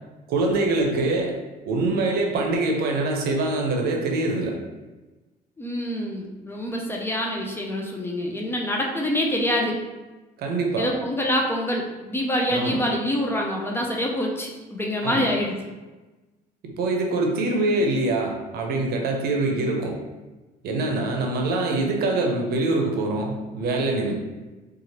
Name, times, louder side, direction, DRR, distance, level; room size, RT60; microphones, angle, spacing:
voice 1, 0.3-1.3 1.7-4.6 10.4-10.9 12.5-12.8 15.0-15.3 16.6-20.0 20.6-24.1, right 2 dB, 65° right, 1 dB, 0.6 m, -24 dB
voice 2, 5.6-9.8 10.8-15.6, left 1 dB, 15° left, 0 dB, 0.4 m, -26 dB
2.9 x 2.4 x 2.8 m, 1.2 s
cardioid pair, 110°, 17 cm